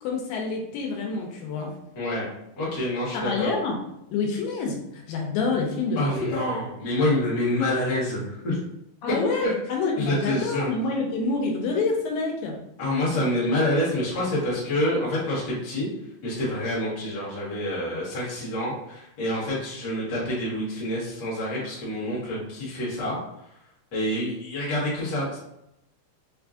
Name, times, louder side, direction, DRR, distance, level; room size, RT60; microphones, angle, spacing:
voice 1, 0.0-1.7 3.1-3.8 4.1-6.5 9.0-12.6, left 4 dB, 80° left, 1 dB, 2.3 m, -27 dB
voice 2, 1.9-2.3 2.6-3.5 5.9-8.6 10.0-10.7 12.8-15.9 16.2-23.2 23.9-25.4, left 1 dB, 50° left, -7 dB, 1.1 m, -27 dB
5.5 x 2.3 x 2.5 m, 0.83 s
omnidirectional pair, 4.2 m